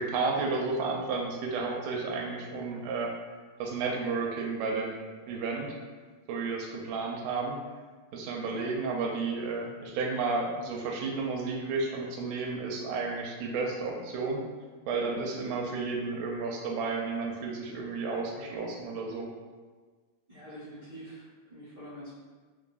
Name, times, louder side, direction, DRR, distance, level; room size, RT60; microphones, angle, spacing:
voice 1, 0.0-3.1 3.6-5.0 5.3-5.8 6.3-7.6 8.1-14.5 14.9-19.3, right 4 dB, 85° right, 0 dB, 2.0 m, -32 dB
voice 2, 20.3-22.2, equal, 60° right, -12 dB, 1.0 m, -46 dB
5.0 x 2.5 x 2.3 m, 1.4 s
omnidirectional pair, 3.5 m